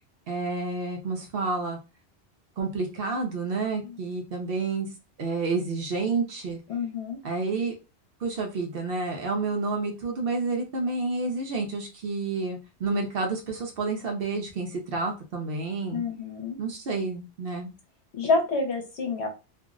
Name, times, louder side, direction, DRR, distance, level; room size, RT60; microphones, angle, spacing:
voice 1, 0.3-1.8 2.6-4.9 5.2-6.6 7.2-7.7 8.2-16.0 16.6-17.7, right 3 dB, 60° right, 2 dB, 0.7 m, -29 dB
voice 2, 6.7-7.2 15.9-16.6 18.2-19.3, left 3 dB, 65° left, 3 dB, 1.0 m, -28 dB
2.6 x 2.0 x 3.6 m, 0.30 s
omnidirectional pair, 1.2 m